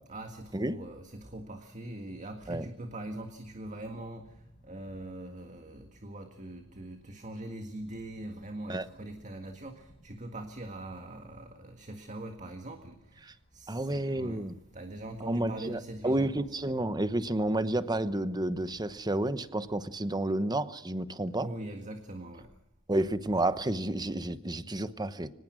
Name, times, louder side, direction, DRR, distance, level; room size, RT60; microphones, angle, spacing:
voice 1, 0.1-16.4 21.4-22.5, right 1 dB, 35° right, 5 dB, 1.8 m, -42 dB
sound 1, 3.0-19.9, equal, 35° left, 5.9 m, -61 dB
voice 2, 13.7-14.5 15.2-21.5 22.9-25.3, right 1 dB, 20° right, 13 dB, 1.0 m, -30 dB
24.5 x 20.0 x 6.3 m, 0.82 s
head